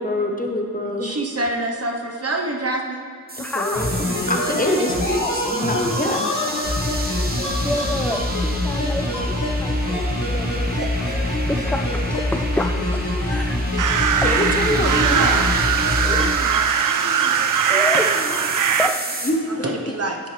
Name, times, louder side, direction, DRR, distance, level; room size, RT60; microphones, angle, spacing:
voice 1, 0.0-1.2 3.4-3.9 4.3-6.3 14.2-15.4 19.2-19.5, left 1 dB, 25° left, 2 dB, 1.1 m, -24 dB
voice 2, 0.8-3.1 13.7-18.5 19.5-20.3, right 2 dB, 50° right, 1 dB, 1.1 m, -29 dB
sound 1, 3.3-19.3, right 2 dB, 30° right, 1.1 m, -33 dB
voice 3, 3.4-4.3 5.2-5.3 5.6-5.7 7.4-13.9 14.2-14.3 14.6-14.7 15.9-16.4 17.7-19.2, left 1 dB, 5° left, 4 dB, 0.4 m, -30 dB
sound 2, 3.7-16.3 16.6-16.7, left 1 dB, 75° left, 2.1 m, -24 dB
sound 3, 13.8-18.9, right 7 dB, 90° right, 0.5 m, -20 dB
9.8 x 9.0 x 3.4 m, 2.3 s
wide cardioid pair, 60°, 31 cm